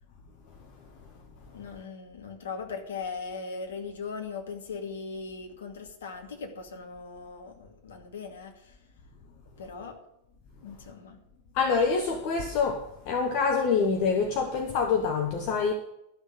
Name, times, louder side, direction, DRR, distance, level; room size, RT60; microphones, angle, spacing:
voice 1, 1.5-8.8 9.6-10.0 10.6-11.2, left 5 dB, 65° left, 2.3 m, -39 dB
voice 2, 11.5-15.7, left 5 dB, 45° left, 1.2 m, -26 dB
13.0 x 6.5 x 8.3 m
figure-of-eight pair, 90°, 0 cm